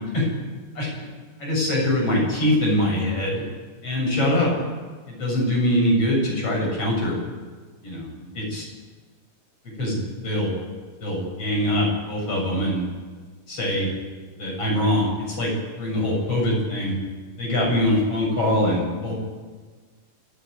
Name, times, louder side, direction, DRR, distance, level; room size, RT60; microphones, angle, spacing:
voice 1, 1.4-3.4 3.8-4.5 5.1-7.2 7.8-8.6 9.8-10.6 11.0-12.8 13.5-13.9 14.4-15.5 15.8-16.9 17.4-19.2, left 1 dB, 45° left, -1 dB, 8.0 m, -23 dB
28.0 x 12.0 x 9.4 m, 1.5 s
omnidirectional pair, 3.8 m